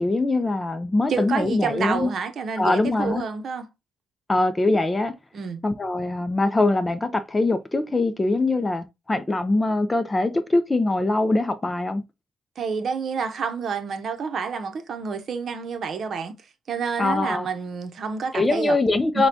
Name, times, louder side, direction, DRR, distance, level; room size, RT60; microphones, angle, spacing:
voice 1, 0.0-2.1 2.6-3.2 4.3-5.1 5.6-12.0 17.0-17.5 18.3-19.3, left 2 dB, 20° left, 0.5 m, -22 dB
voice 2, 1.1-3.7 5.3-5.6 12.6-16.3 16.7-18.8 19.1-19.2, right 5 dB, 55° right, 0.8 m, -28 dB
6.5 x 2.3 x 2.7 m
cardioid pair, 90°, 0 cm